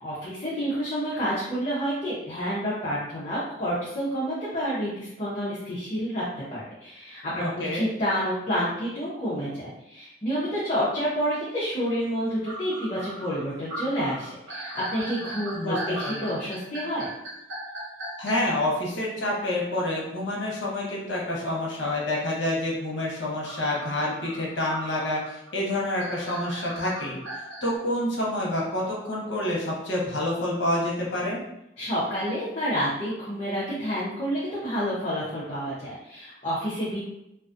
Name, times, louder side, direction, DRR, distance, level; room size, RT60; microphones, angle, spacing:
voice 1, 0.0-6.2 6.5-17.1 31.8-37.0, equal, 35° left, -9 dB, 0.6 m, -29 dB
voice 2, 7.4-7.9 15.5-16.3 18.2-27.2 27.6-31.4, left 1 dB, 75° left, -3 dB, 0.8 m, -28 dB
sound 1, 12.0-12.1 12.4-18.3 23.4-27.7, right 1 dB, 85° right, 0.7 m, -38 dB
2.5 x 2.3 x 2.5 m, 0.84 s
head